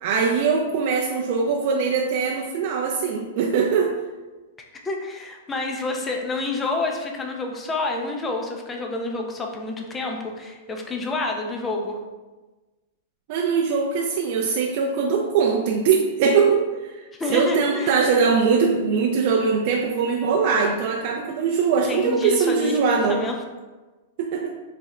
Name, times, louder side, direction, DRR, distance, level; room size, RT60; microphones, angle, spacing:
voice 1, 0.0-3.9 13.3-17.0 17.3-23.2 24.2-24.5, right 5 dB, 50° right, 0 dB, 0.4 m, -21 dB
voice 2, 4.8-12.0 17.2-18.0 21.8-23.4, left 2 dB, 15° left, 2 dB, 0.4 m, -28 dB
4.1 x 2.1 x 3.6 m, 1.2 s
hypercardioid pair, 145°, 0 cm